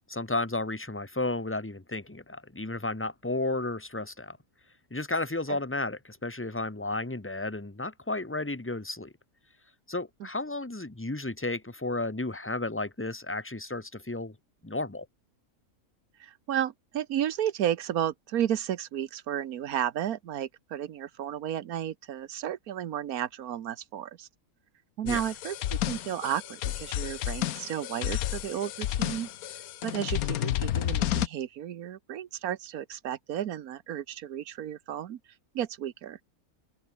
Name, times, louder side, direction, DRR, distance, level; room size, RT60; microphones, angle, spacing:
voice 1, 0.0-4.4 4.9-9.1 9.9-14.3 14.6-15.1 25.0-25.2, left 2 dB, 10° left, 1.4 m, -33 dB
voice 2, 16.2-24.3 25.0-25.6 25.9-29.3 29.8-35.2 35.5-36.2, right 10 dB, 85° right, 1.4 m, -33 dB
sound 1, 25.1-31.3, left 13 dB, 85° left, 1.2 m, -31 dB
open air
omnidirectional pair, 1.5 m